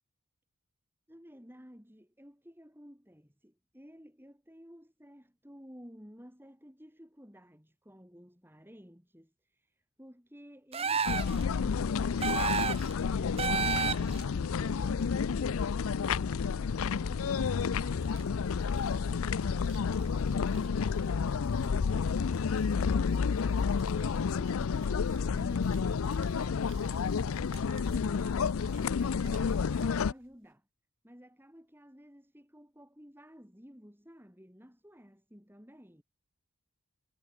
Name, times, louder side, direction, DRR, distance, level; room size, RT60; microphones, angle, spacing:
voice 1, 1.1-16.0 16.5-22.4 22.6-26.7 26.9-30.7 31.0-36.0, equal, 10° right, 7.5 m, -54 dB
sound 1, 10.7-11.4 12.2-12.9 13.4-14.2, right 6 dB, 30° right, 0.9 m, -30 dB
sound 2, 11.1-30.1, left 5 dB, 80° left, 0.5 m, -30 dB
sound 3, 17.7-30.5, right 4 dB, 65° right, 5.3 m, -59 dB
head